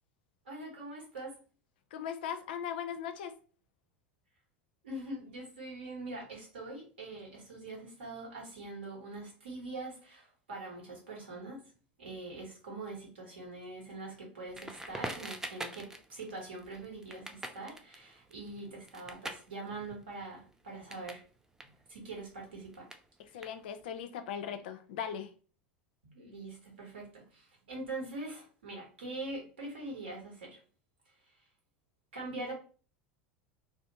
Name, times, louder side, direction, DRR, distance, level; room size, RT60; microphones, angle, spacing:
voice 1, 0.4-1.4 4.8-11.7 12.0-21.2 21.9-22.9 26.0-30.6 32.1-32.5, right 2 dB, 70° right, 1.1 m, -43 dB
voice 2, 1.9-3.3 23.3-25.3, left 8 dB, 60° left, 0.4 m, -38 dB
Crackle, 14.5-21.3 21.5-24.0, right 2 dB, 10° right, 0.3 m, -45 dB
2.4 x 2.1 x 2.8 m
figure-of-eight pair, 75°, 6 cm